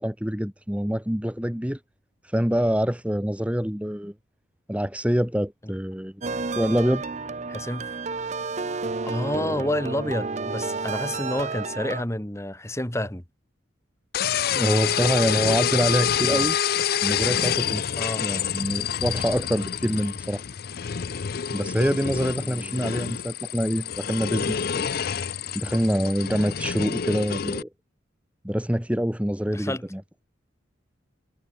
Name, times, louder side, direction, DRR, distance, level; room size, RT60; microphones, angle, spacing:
voice 1, 0.0-1.8 2.2-4.1 4.7-6.2 6.5-7.0 14.5-16.6 17.0-17.8 18.2-20.4 21.5-24.9 25.5-27.7 28.4-30.0, equal, 5° right, 1.3 m, -25 dB
sound 1, 6.2-12.0, right 4 dB, 35° right, 0.6 m, -31 dB
voice 2, 7.5-7.9 9.0-13.2 18.0-18.3 22.4-22.7 29.5-29.8, left 1 dB, 15° left, 1.9 m, -29 dB
sound 2, 14.1-27.6, left 8 dB, 50° left, 0.5 m, -27 dB
head